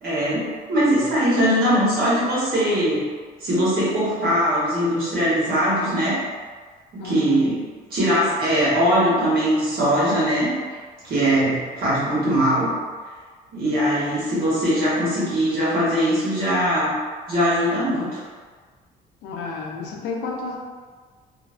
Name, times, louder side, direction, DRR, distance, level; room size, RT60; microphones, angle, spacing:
voice 1, 0.0-3.0 3.4-6.2 6.9-7.6 7.9-10.5 11.0-12.7 13.5-16.9 17.3-18.2, equal, 60° right, -8 dB, 1.4 m, -21 dB
voice 2, 7.0-7.5 19.2-20.6, left 4 dB, 85° left, -1 dB, 0.5 m, -31 dB
3.0 x 2.1 x 2.5 m, 1.5 s
cardioid pair, 110°, 17 cm